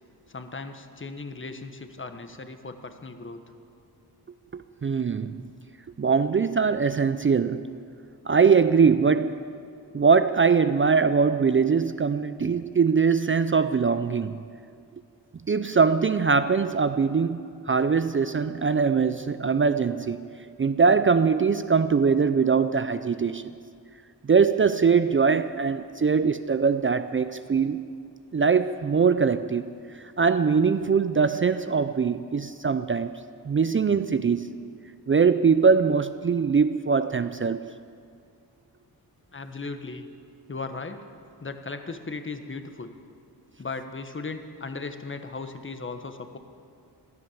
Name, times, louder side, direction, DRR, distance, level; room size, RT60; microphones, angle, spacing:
voice 1, 0.3-3.4 39.3-40.1 40.5-41.0 41.4-42.9 43.6-46.4, left 3 dB, 30° left, 8 dB, 1.2 m, -37 dB
voice 2, 4.5-5.4 6.0-7.7 8.3-9.4 9.9-14.4 15.5-20.2 20.6-23.4 24.2-27.8 28.3-29.7 29.9-33.2 33.4-34.5 35.1-37.6, right 5 dB, 30° right, 11 dB, 0.5 m, -22 dB
16.0 x 13.0 x 7.0 m, 2.3 s
wide cardioid pair, 80°, 40 cm